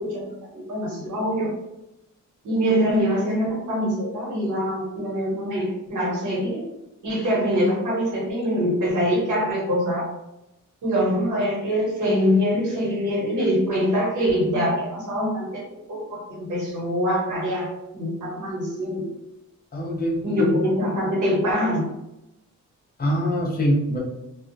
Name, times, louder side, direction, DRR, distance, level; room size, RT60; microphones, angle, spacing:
voice 1, 0.0-1.5 2.4-6.6 7.0-10.0 10.8-15.6 15.9-17.7 17.9-19.0 20.2-21.9, equal, 70° right, -4 dB, 1.1 m, -24 dB
voice 2, 19.7-20.5 23.0-24.0, equal, 30° left, -4 dB, 0.6 m, -23 dB
2.3 x 2.1 x 2.5 m, 0.90 s
wide cardioid pair, 160°, 31 cm